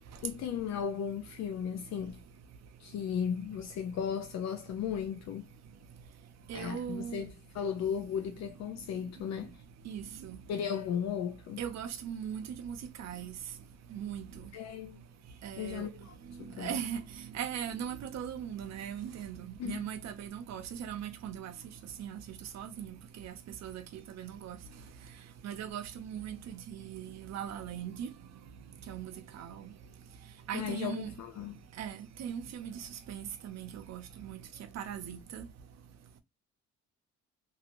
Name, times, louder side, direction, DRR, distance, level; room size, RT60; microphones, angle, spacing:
voice 1, 0.2-2.2 2.8-5.5 6.5-9.5 10.5-11.6 14.5-15.0 15.6-16.8 19.6-19.9 30.5-31.6, left 8 dB, 65° left, 0.5 m, -36 dB
voice 2, 6.5-7.2 9.9-10.4 11.6-13.3 13.9-14.2 15.4-15.9 16.6-17.0 17.3-21.5 22.0-22.2 22.5-23.3 23.6-24.6 25.4-28.1 28.9-29.1 29.4-29.7 30.5-31.1 31.8-32.8 33.1-34.4 34.7-35.5, right 9 dB, 65° right, 0.7 m, -39 dB
2.7 x 2.6 x 2.9 m
cardioid pair, 145°, 29 cm